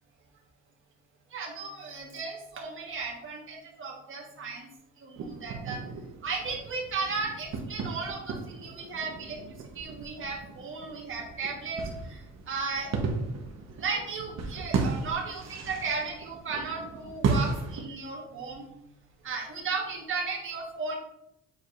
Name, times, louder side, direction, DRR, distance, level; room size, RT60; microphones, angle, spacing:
voice 1, 1.3-4.7 5.0-5.8 6.2-9.4 9.7-12.9 13.8-18.7 19.2-21.0, right 4 dB, 45° right, -1 dB, 1.5 m, -35 dB
sound 1, 5.1-17.8, right 4 dB, 60° right, 1.2 m, -35 dB
7.7 x 4.8 x 2.6 m, 0.80 s
cardioid pair, 90°, 30 cm